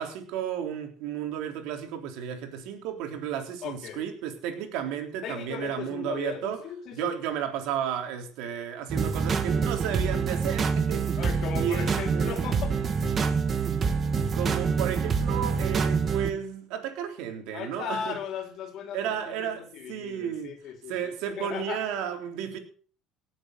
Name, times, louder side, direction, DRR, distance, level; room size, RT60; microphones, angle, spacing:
voice 1, 0.0-6.6 6.9-11.1 11.6-12.3 14.3-18.2 18.9-20.6 20.9-22.6, right 9 dB, 75° right, 3.7 m, -33 dB
voice 2, 3.6-4.1 5.2-7.1 11.2-12.8 17.5-20.9 21.4-21.8, left 7 dB, 55° left, 3.6 m, -37 dB
sound 1, 8.9-16.3, right 5 dB, 35° right, 2.2 m, -26 dB
18.0 x 8.2 x 6.6 m
cardioid pair, 115°, 0 cm